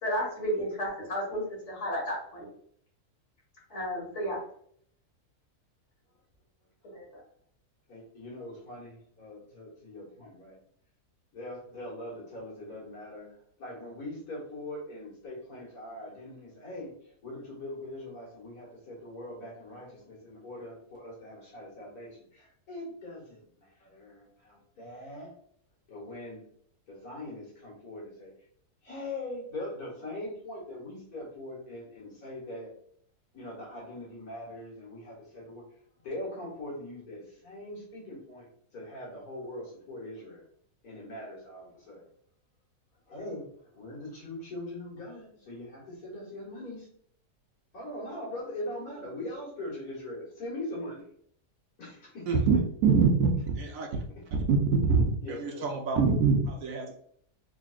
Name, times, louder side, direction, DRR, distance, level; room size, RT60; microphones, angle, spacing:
voice 1, 0.0-2.5 3.7-4.4 6.8-7.1, equal, 50° left, -4 dB, 1.9 m, -32 dB
voice 2, 7.9-10.6 11.3-25.3 25.9-26.4 26.9-28.3 28.8-32.7 33.3-35.6 36.0-40.5 40.8-42.0 43.1-43.5 43.7-46.9 47.7-51.1 51.8-52.4 54.1-54.2 55.2-55.7, left 1 dB, 75° left, -6 dB, 2.2 m, -41 dB
voice 3, 52.3-52.6 52.8-53.3 53.6-54.0 54.5-54.6 54.9-57.0, right 5 dB, 70° right, 2 dB, 1.0 m, -24 dB
3.9 x 3.2 x 2.4 m, 0.62 s
omnidirectional pair, 1.6 m